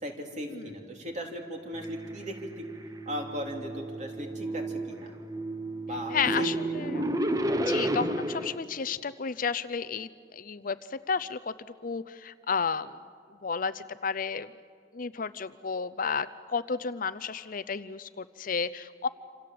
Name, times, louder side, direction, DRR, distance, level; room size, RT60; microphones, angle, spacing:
voice 1, 0.0-2.7 3.0-5.1 5.9-6.9, equal, 40° right, 2 dB, 3.4 m, -37 dB
sound 1, 1.7-8.6, right 1 dB, 20° right, 1.1 m, -32 dB
voice 2, 6.1-7.0 7.6-11.5 11.8-13.0 13.4-14.5 14.9-19.1, left 5 dB, 45° left, 15 dB, 0.6 m, -32 dB
27.5 x 27.5 x 7.8 m, 2.2 s
head